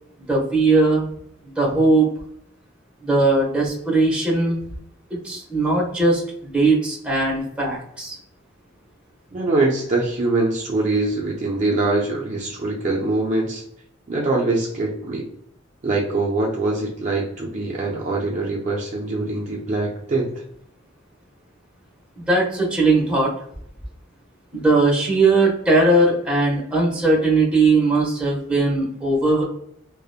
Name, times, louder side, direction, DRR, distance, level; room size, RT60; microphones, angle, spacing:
voice 1, 0.3-1.1 1.4-2.1 3.0-4.7 5.2-8.2 22.2-23.3 24.5-29.4, right 2 dB, 5° right, -4 dB, 0.8 m, -19 dB
voice 2, 9.3-13.6 14.1-15.3 15.8-20.3, right 2 dB, 40° right, -2 dB, 0.4 m, -23 dB
2.8 x 2.1 x 2.3 m, 0.71 s
head